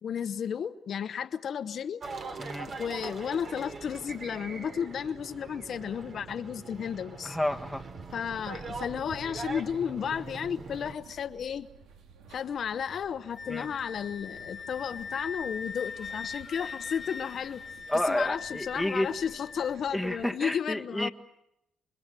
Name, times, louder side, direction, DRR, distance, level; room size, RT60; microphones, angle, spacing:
voice 1, 0.0-2.0 2.8-7.4 8.1-11.7 12.3-17.6 18.0-21.1, left 8 dB, 60° left, 10 dB, 1.0 m, -33 dB
sound 1, 2.0-10.9, right 3 dB, 50° right, 3.5 m, -42 dB
voice 2, 7.2-7.8 13.5-13.7 17.9-19.1 19.9-21.1, left 1 dB, ahead, 5 dB, 1.6 m, -30 dB
sound 2, 7.5-20.3, right 6 dB, 80° right, 2.4 m, -53 dB
Wind instrument woodwind instrument, 13.3-19.7, left 5 dB, 35° left, 1.4 m, -41 dB
28.0 x 24.5 x 7.6 m, 0.83 s
cardioid pair, 90°, 0 cm